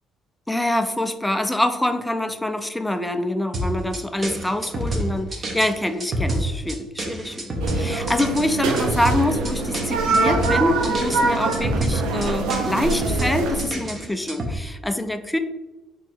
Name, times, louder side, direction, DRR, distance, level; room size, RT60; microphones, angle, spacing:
voice 1, 0.5-15.4, left 1 dB, 5° left, 9 dB, 0.4 m, -25 dB
sound 1, 3.5-14.6, right 1 dB, 35° right, 0.8 m, -28 dB
sound 2, 7.6-13.7, right 3 dB, 90° right, 0.5 m, -24 dB
3.1 x 2.9 x 4.3 m, 1.1 s
cardioid pair, 100°, 0 cm